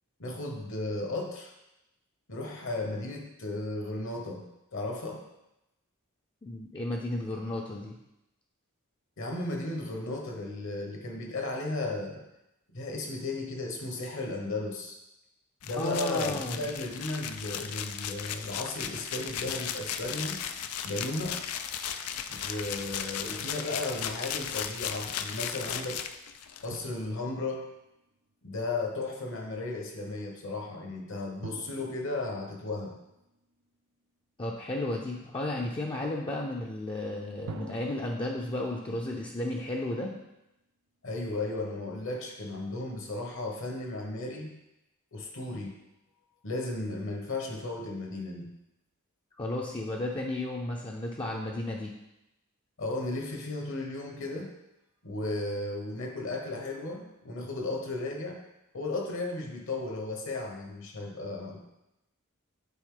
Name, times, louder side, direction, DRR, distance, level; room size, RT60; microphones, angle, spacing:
voice 1, 0.2-1.5 2.3-4.4 4.7-5.2 9.2-12.2 12.7-15.0 15.6-20.4 20.8-21.4 22.3-26.0 26.6-27.7 28.4-33.0 41.0-44.5 45.1-45.8 46.4-48.5 52.8-54.5 55.0-58.4 58.7-61.6, left 2 dB, 60° left, 2 dB, 1.2 m, -35 dB
voice 2, 6.4-7.9 15.8-16.6 34.4-40.1 49.4-51.9, left 1 dB, 25° left, -2 dB, 0.6 m, -33 dB
sound 1, 15.6-26.8, left 8 dB, 85° left, 0.4 m, -36 dB
Drum, 26.7-28.5 31.4-33.9 37.5-40.6, right 4 dB, 85° right, 0.5 m, -49 dB
9.1 x 4.0 x 3.9 m, 0.90 s
head